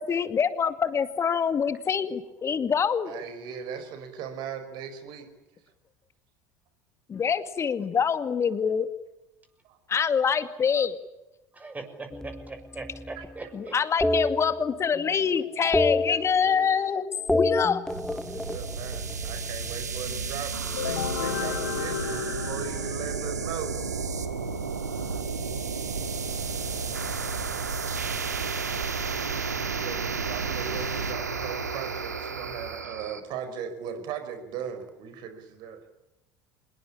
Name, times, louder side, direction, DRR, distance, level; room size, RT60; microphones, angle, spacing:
voice 1, 0.0-3.1 7.1-8.9 9.9-11.0 13.5-17.0 17.3-17.8, left 6 dB, 30° left, 11 dB, 2.3 m, -25 dB
voice 2, 3.1-5.3 9.6-9.8 13.2-13.3 16.4-16.7 18.3-23.7 28.6-36.0, right 7 dB, 55° right, 9 dB, 5.2 m, -38 dB
voice 3, 11.5-13.8, right 3 dB, 15° right, 6 dB, 6.7 m, -40 dB
sound 1, 12.1-13.4 14.0-15.2 15.4-16.9 17.2-19.5 20.7-22.5, left 2 dB, 5° left, 1.7 m, -30 dB
sound 2, 17.9-33.2, right 5 dB, 85° right, 2.1 m, -32 dB
sound 3, 20.8-23.4, left 10 dB, 80° left, 1.1 m, -33 dB
26.0 x 21.5 x 8.8 m, 0.98 s
figure-of-eight pair, 65°, 9 cm